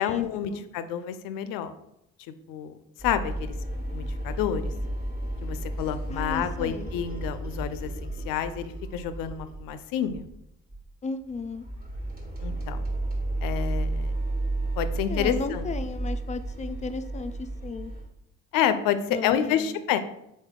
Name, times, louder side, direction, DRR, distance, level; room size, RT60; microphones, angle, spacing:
voice 1, 0.0-1.7 2.5-3.5 3.9-4.7 5.4-10.3 12.4-12.8 13.4-14.1 14.8-15.7 18.5-20.0, left 9 dB, 80° left, 11 dB, 0.5 m, -29 dB
sound 1, 3.0-9.7 10.1-10.4 10.7-10.8 11.3-18.0, right 2 dB, 25° right, 1.4 m, -32 dB
voice 2, 6.1-6.9 11.0-11.7 15.0-17.9 19.1-19.7, left 4 dB, 20° left, 10 dB, 0.4 m, -35 dB
3.8 x 3.5 x 3.7 m, 0.82 s
supercardioid pair, 70°, 34 cm